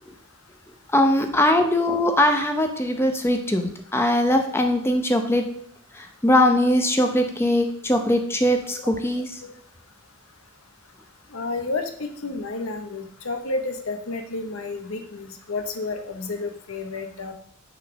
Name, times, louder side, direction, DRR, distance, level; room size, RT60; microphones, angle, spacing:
voice 1, 0.9-5.5 5.9-9.3, left 1 dB, 10° left, 5 dB, 0.6 m, -21 dB
voice 2, 11.3-17.3, left 3 dB, 75° left, 6 dB, 0.9 m, -31 dB
6.5 x 3.8 x 5.9 m, 0.63 s
head